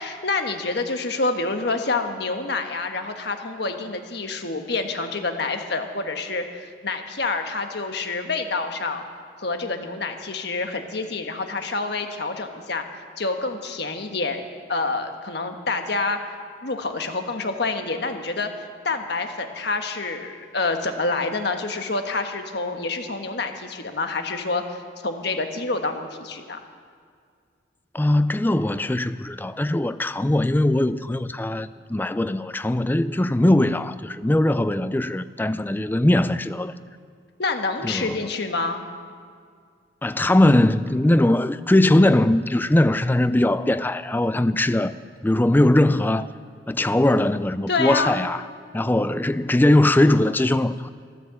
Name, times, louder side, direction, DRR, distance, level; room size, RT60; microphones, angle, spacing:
voice 1, 0.0-9.0 9.4-12.8 13.2-14.4 14.7-16.2 16.6-26.6 37.4-38.9 47.7-48.3, left 3 dB, 55° left, 1.3 m, -27 dB
voice 2, 27.9-36.8 37.8-38.2 40.0-44.9 45.2-46.3 46.7-48.4 48.7-50.9, left 1 dB, 10° left, 0.3 m, -20 dB
14.0 x 13.0 x 7.5 m
head